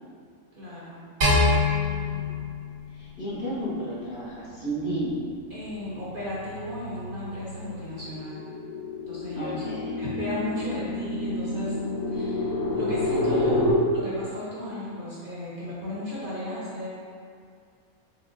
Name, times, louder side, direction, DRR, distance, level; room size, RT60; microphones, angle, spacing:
voice 1, 0.5-2.5 5.5-8.5 9.1-9.6 10.0-11.7 12.1-13.6 13.9-16.9, left 1 dB, 45° right, -9 dB, 0.8 m, -35 dB
sound 1, 1.2-3.6, left 2 dB, 80° right, 1.7 m, -24 dB
voice 2, 2.9-5.1 9.3-10.0, right 1 dB, 55° left, -8 dB, 1.0 m, -32 dB
sound 2, 4.1-4.4 4.8-13.7, left 2 dB, 90° left, 1.7 m, -30 dB
4.6 x 2.2 x 3.8 m, 2.3 s
omnidirectional pair, 1.5 m